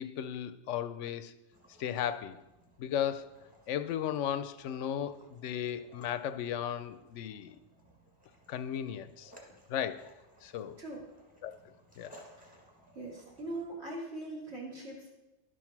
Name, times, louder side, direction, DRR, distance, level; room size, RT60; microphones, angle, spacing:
voice 1, 0.0-1.3 1.8-2.4 2.8-3.3 3.7-7.6 8.5-9.3 9.7-10.1 10.4-10.8 11.4-11.5 12.0-12.1, left 9 dB, 80° left, 13 dB, 0.9 m, -35 dB
sound 1, 1.5-13.7, right 1 dB, 5° right, 1.8 m, -60 dB
voice 2, 12.9-15.1, right 2 dB, 60° right, -3 dB, 2.9 m, -41 dB
11.5 x 6.3 x 5.9 m, 1.0 s
omnidirectional pair, 1.3 m